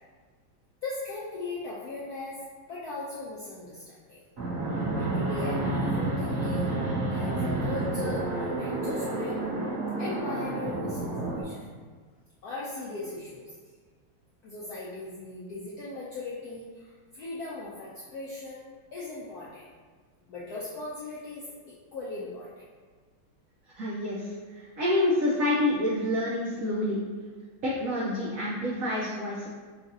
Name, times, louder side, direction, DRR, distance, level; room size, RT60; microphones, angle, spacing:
voice 1, 0.8-4.2 5.0-6.7 7.1-9.5 10.0-11.7 12.4-13.5 14.4-19.7 20.3-22.5, left 2 dB, 85° left, -6 dB, 0.8 m, -38 dB
Fixed-wing aircraft airplane, 4.4-11.4, right 2 dB, 50° right, 1.2 m, -30 dB
voice 2, 23.8-27.0 27.6-29.5, left 1 dB, 90° right, -5 dB, 0.7 m, -28 dB
5.6 x 2.4 x 2.6 m, 1.5 s
omnidirectional pair, 2.2 m